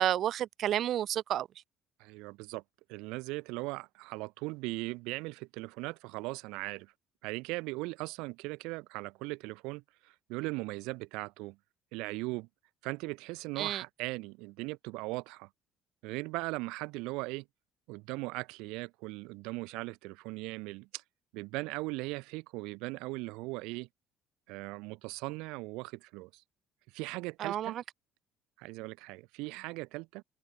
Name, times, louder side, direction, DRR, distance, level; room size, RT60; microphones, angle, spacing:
voice 1, 0.0-1.5 13.6-13.8 27.4-27.7, right 11 dB, 55° right, 0.7 m, -30 dB
voice 2, 2.0-2.6 2.9-6.9 7.2-11.6 11.9-12.5 12.8-15.5 16.0-17.5 17.9-21.0 21.3-23.9 24.5-26.4 26.9-27.8 28.6-30.2, right 24 dB, 90° right, 3.5 m, -39 dB
cardioid pair, 115°, 0 cm